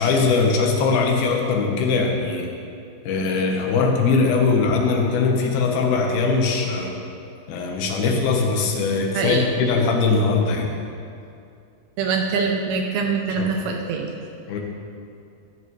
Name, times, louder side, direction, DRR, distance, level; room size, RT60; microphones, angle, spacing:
voice 1, 0.0-2.5 3.0-7.0 7.5-10.7 13.4-13.5 14.5-14.6, left 4 dB, 70° left, 1 dB, 2.7 m, -21 dB
voice 2, 12.0-14.1, right 5 dB, 80° right, 3 dB, 2.3 m, -24 dB
13.0 x 12.5 x 3.2 m, 2.5 s
omnidirectional pair, 5.1 m